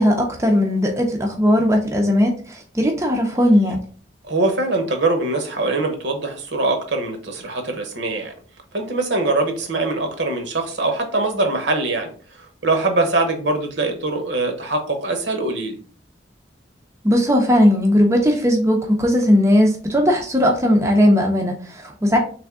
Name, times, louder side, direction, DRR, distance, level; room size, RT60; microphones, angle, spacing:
voice 1, 0.0-3.8 17.0-22.2, equal, 15° right, 0 dB, 0.5 m, -17 dB
voice 2, 4.2-8.3 8.7-12.1 12.4-15.8, right 2 dB, 60° right, 5 dB, 0.9 m, -22 dB
3.5 x 3.1 x 3.5 m, 0.42 s
head